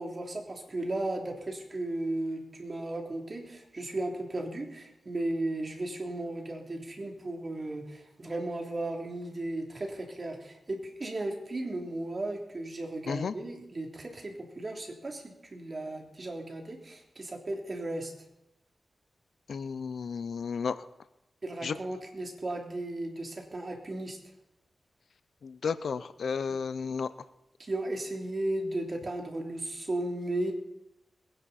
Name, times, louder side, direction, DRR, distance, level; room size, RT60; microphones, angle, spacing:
voice 1, 0.0-18.1 21.4-24.2 26.5-26.6 27.6-30.5, right 2 dB, 45° right, 2 dB, 3.2 m, -35 dB
voice 2, 19.5-20.8 21.6-21.8 25.4-27.1, left 5 dB, 80° left, 14 dB, 0.6 m, -32 dB
22.0 x 10.5 x 4.3 m, 0.87 s
cardioid pair, 55°, 0 cm